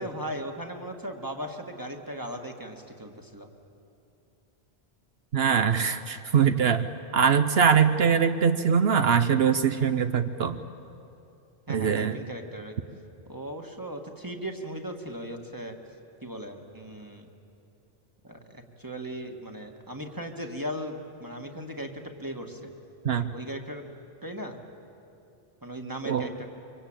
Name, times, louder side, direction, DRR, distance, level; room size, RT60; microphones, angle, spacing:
voice 1, 0.0-3.5 11.7-12.8 13.3-15.8 16.2-17.3 18.2-22.7 23.3-23.8 24.2-24.6 25.6-26.5, right 1 dB, 20° right, 3 dB, 1.8 m, -37 dB
voice 2, 5.3-6.9 7.1-10.6 11.7-12.2 23.0-23.3 26.0-26.3, right 7 dB, 75° right, 9 dB, 1.0 m, -22 dB
25.0 x 24.0 x 8.9 m, 2.7 s
omnidirectional pair, 1.1 m